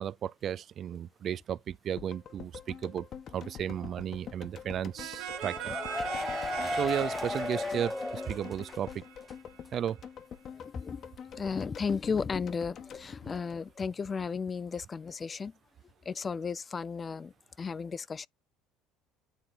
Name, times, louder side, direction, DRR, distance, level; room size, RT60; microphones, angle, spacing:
voice 1, 0.0-3.1 3.3-5.8 6.7-9.0 9.7-10.0, right 9 dB, 50° right, 0.4 m, -34 dB
sound 1, 2.0-14.2 14.4-14.5, left 8 dB, 50° left, 1.3 m, -46 dB
sound 2, 5.0-9.6, right 10 dB, 80° right, 1.6 m, -41 dB
sound 3, 5.3-8.9 9.2-9.3 9.7-9.8, left 2 dB, 15° left, 0.8 m, -35 dB
voice 2, 10.5-11.0 11.3-15.5 16.1-18.3, left 5 dB, 30° left, 0.3 m, -34 dB
9.6 x 3.4 x 4.0 m
supercardioid pair, 95°, 0 cm